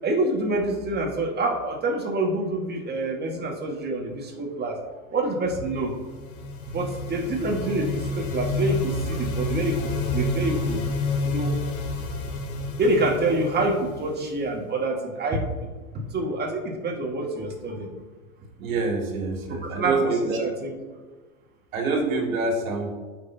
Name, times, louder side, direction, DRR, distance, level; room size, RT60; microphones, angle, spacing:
voice 1, 0.0-4.8 5.1-5.9 6.7-10.9 11.2-11.5 12.8-15.7 15.9-17.9 19.8-20.7, right 2 dB, 25° right, 1 dB, 1.8 m, -27 dB
sound 1, 5.8-14.6, left 2 dB, 85° left, 1.3 m, -29 dB
voice 2, 18.6-20.4 21.7-22.9, right 3 dB, 70° right, 1 dB, 2.3 m, -26 dB
13.5 x 5.9 x 2.8 m, 1.3 s
hypercardioid pair, 100°, 42 cm